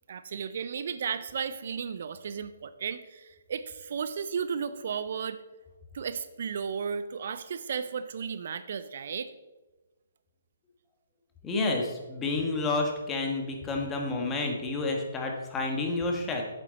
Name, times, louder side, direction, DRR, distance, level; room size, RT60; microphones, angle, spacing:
voice 1, 0.1-5.4 5.9-9.3, right 6 dB, 60° right, 13 dB, 0.5 m, -34 dB
voice 2, 11.4-16.4, left 3 dB, 15° left, 1 dB, 1.6 m, -30 dB
8.3 x 8.0 x 4.1 m, 1.2 s
hypercardioid pair, 140°, 0 cm